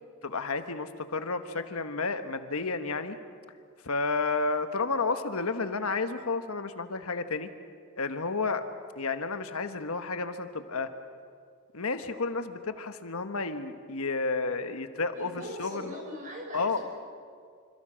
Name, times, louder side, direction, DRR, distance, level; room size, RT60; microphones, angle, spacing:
voice 1, 0.2-3.2 3.8-7.5 8.0-8.6 9.0-10.9 11.7-15.9 16.5-16.8, left 4 dB, 80° left, 8 dB, 1.3 m, -31 dB
voice 2, 15.1-16.8, left 1 dB, 35° right, 0 dB, 6.3 m, -41 dB
27.0 x 26.5 x 6.4 m, 2.1 s
head